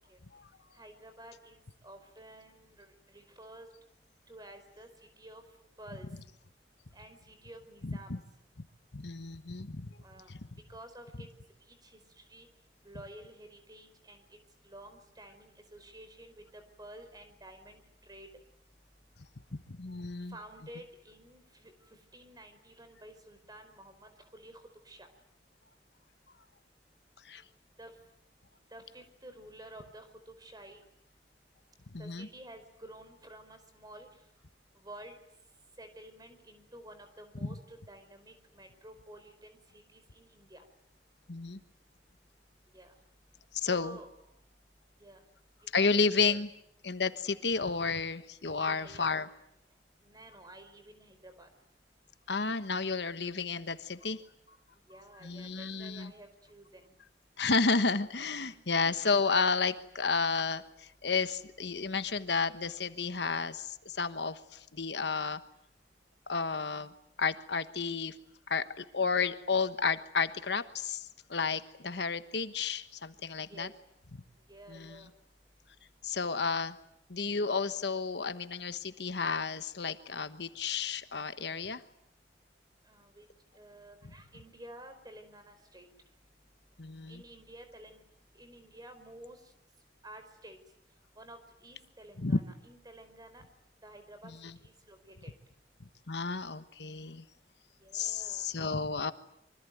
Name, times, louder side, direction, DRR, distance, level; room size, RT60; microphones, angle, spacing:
voice 1, 0.7-3.7 4.3-4.9 5.2-5.4 5.8-6.1 6.9-8.2 10.0-10.3 10.7-11.3 11.7-12.5 12.8-14.4 14.6-18.3 20.3-25.1 27.8-27.9 28.7-30.8 32.0-34.1 34.8-35.1 35.8-40.6 42.7-42.9 43.7-44.1 45.0-45.2 45.7-46.4 48.6-49.1 50.0-51.5 54.9-56.9 58.5-58.9 73.5-73.7 74.5-75.1 82.8-83.3 83.5-85.9 87.1-88.0 88.3-89.5 90.0-90.6 91.2-93.4 93.8-95.3 97.8-98.5, right 1 dB, 20° right, 8 dB, 4.8 m, -51 dB
voice 2, 7.8-8.2 8.9-9.9 10.3-10.4 19.7-20.4 27.2-27.4 31.9-32.3 37.4-37.6 41.3-41.6 43.5-44.0 45.7-46.5 46.8-49.3 52.3-54.2 55.2-56.1 57.4-65.4 66.3-66.9 67.2-68.1 68.5-73.7 74.7-75.0 76.0-76.8 77.1-81.8 86.8-87.2 92.2-92.4 94.2-94.5 96.1-97.2 97.9-99.1, left 4 dB, 65° left, 11 dB, 1.3 m, -32 dB
26.0 x 24.5 x 9.3 m, 0.73 s
head